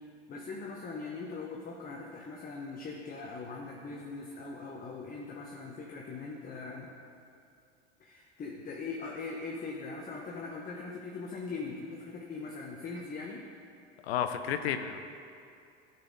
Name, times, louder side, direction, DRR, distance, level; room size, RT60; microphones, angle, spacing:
voice 1, 0.3-6.9 8.0-13.5, left 4 dB, 30° left, -1 dB, 0.9 m, -41 dB
voice 2, 14.0-15.0, left 9 dB, 85° left, 8 dB, 0.5 m, -31 dB
10.5 x 4.2 x 3.8 m, 2.6 s
hypercardioid pair, 85°, 30 cm